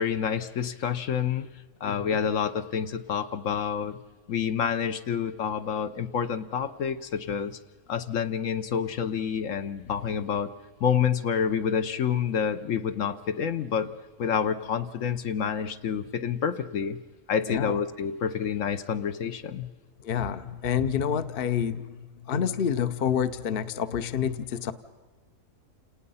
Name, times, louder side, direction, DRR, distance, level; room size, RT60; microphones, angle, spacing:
voice 1, 0.0-1.5 1.8-4.0 4.3-7.6 7.9-10.5 10.8-13.9 14.2-17.0 17.3-19.7, left 7 dB, 65° left, 10 dB, 1.1 m, -28 dB
voice 2, 1.8-2.2 17.5-17.8 20.0-24.7, left 8 dB, 50° left, 12 dB, 0.9 m, -28 dB
29.0 x 18.5 x 5.6 m, 1.4 s
omnidirectional pair, 1.5 m